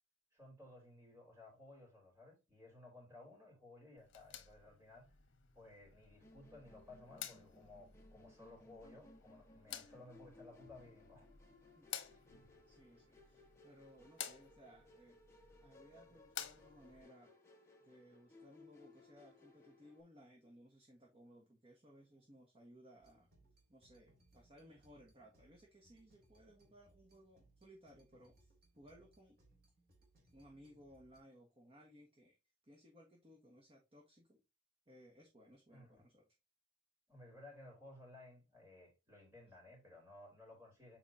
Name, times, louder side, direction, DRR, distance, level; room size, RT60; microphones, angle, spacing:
voice 1, 0.3-5.1 5.5-11.3 12.1-12.2 35.7-36.0 37.1-41.0, left 2 dB, 15° right, 4.0 m, -58 dB
sound 1, 4.0-17.0, left 10 dB, 75° left, 1.1 m, -53 dB
Musical instrument, 6.2-20.0, left 2 dB, 15° left, 1.3 m, -63 dB
voice 2, 12.7-15.2 15.6-17.3 17.8-23.3 23.7-29.4 30.3-32.4 32.6-34.4 34.9-36.2, equal, 30° right, 1.4 m, -62 dB
sound 2, 23.0-31.2, right 2 dB, 50° right, 3.3 m, -70 dB
7.7 x 5.0 x 2.8 m
head